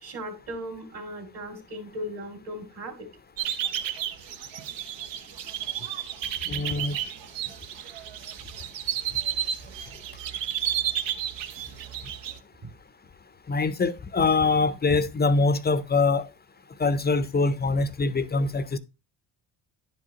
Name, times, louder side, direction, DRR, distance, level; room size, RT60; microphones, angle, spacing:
voice 1, 0.0-3.1, equal, 55° right, 2.4 m, -37 dB
sound 1, 3.4-12.4, right 10 dB, 70° right, 0.9 m, -32 dB
voice 2, 6.5-7.0 13.5-16.2 16.8-18.8, left 3 dB, 20° left, 0.6 m, -24 dB
10.5 x 4.9 x 2.9 m
supercardioid pair, 75°, 45 cm